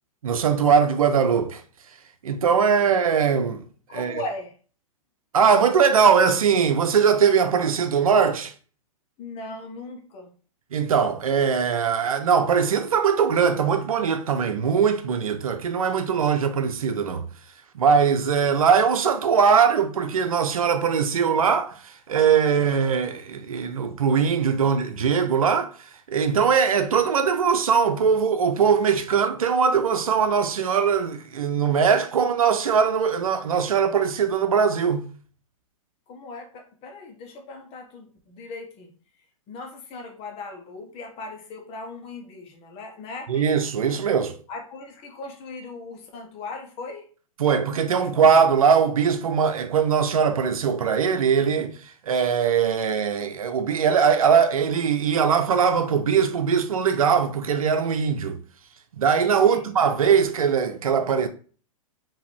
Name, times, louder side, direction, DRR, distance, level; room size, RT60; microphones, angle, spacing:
voice 1, 0.2-1.6 2.2-3.6 3.9-4.1 5.3-8.5 10.7-17.2 17.7-21.8 22.1-25.7 26.1-35.0 43.3-44.4 47.4-51.7 52.1-58.4 59.0-61.3, right 6 dB, 80° right, 0.8 m, -21 dB
voice 2, 3.9-4.5 9.2-10.3 36.1-38.9 39.5-43.5 44.5-47.0 59.4-59.7, left 3 dB, 35° left, 1.4 m, -38 dB
4.9 x 3.1 x 3.4 m
hypercardioid pair, 115°, 18 cm